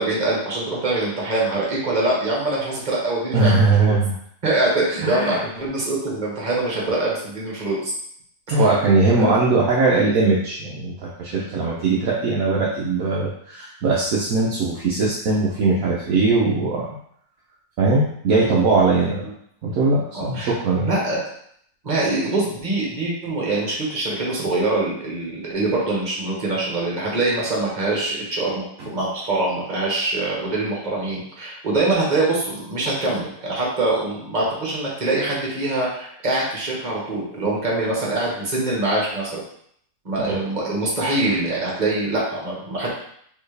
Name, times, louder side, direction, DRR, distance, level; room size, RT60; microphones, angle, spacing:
voice 1, 0.0-4.0 4.4-7.9 8.5-8.7 9.2-9.4 20.1-20.5 20.9-21.2 21.8-39.4 40.0-42.9, right 2 dB, 25° right, -4 dB, 1.2 m, -24 dB
voice 2, 3.3-4.1 5.0-5.4 8.5-16.9 17.8-19.2 19.6-20.9 40.3-40.4, right 3 dB, 65° right, -4 dB, 0.9 m, -20 dB
4.3 x 3.3 x 3.3 m, 0.67 s
omnidirectional pair, 2.1 m